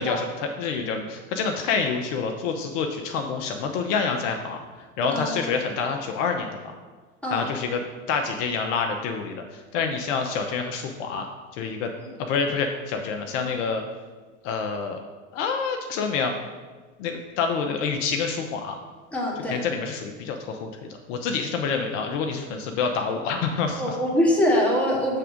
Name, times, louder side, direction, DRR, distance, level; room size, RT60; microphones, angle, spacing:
voice 1, 0.0-6.7 7.3-7.8 8.1-11.3 11.5-11.9 12.2-13.8 14.4-15.0 15.3-16.3 17.0-18.8 19.5-24.0, left 5 dB, 60° left, 4 dB, 0.7 m, -27 dB
voice 2, 19.1-19.6 23.8-25.2, equal, 5° left, -4 dB, 1.7 m, -23 dB
6.7 x 3.5 x 5.0 m, 1.4 s
hypercardioid pair, 95°, 44 cm